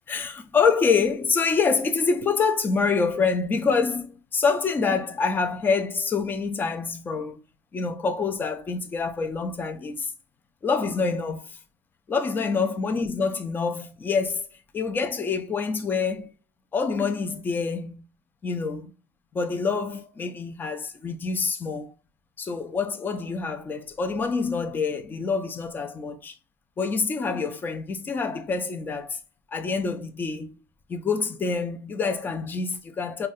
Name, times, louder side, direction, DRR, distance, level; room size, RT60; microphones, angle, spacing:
voice 1, 0.1-7.4 7.7-10.1 10.6-11.6 12.1-14.5 14.7-16.3 16.7-18.0 18.4-18.9 19.3-21.9 22.4-26.3 26.8-29.2 29.5-30.6 30.9-33.3, left 5 dB, 15° left, 0.4 m, -26 dB
2.6 x 2.2 x 3.5 m
supercardioid pair, 140°, 12 cm